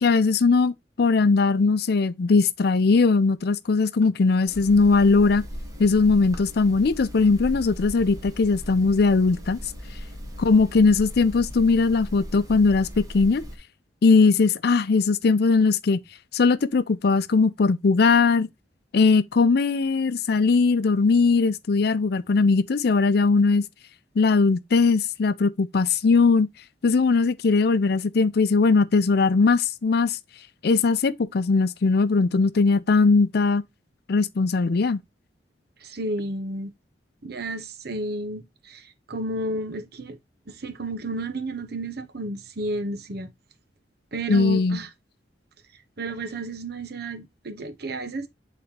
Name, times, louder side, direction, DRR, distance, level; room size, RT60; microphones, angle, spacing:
voice 1, 0.0-5.4 5.8-9.6 10.4-13.4 14.0-16.0 16.3-18.5 18.9-23.6 24.2-26.5 26.8-30.2 30.6-33.6 34.1-35.0 44.3-44.8, left 4 dB, 60° left, 0.5 m, -20 dB
sound 1, 4.5-13.6, equal, 20° right, 1.2 m, -38 dB
voice 2, 35.8-36.7 37.2-40.2 40.5-43.3 44.1-44.9 46.0-48.3, right 1 dB, 60° right, 0.8 m, -32 dB
8.5 x 4.1 x 2.8 m
head